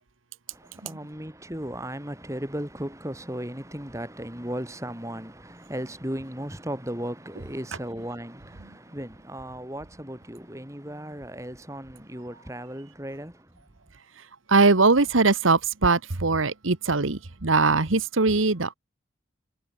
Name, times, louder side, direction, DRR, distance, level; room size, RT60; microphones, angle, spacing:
voice 1, 0.8-13.3, equal, 15° right, 3.5 m, -36 dB
voice 2, 14.5-18.7, right 3 dB, 85° right, 1.4 m, -21 dB
head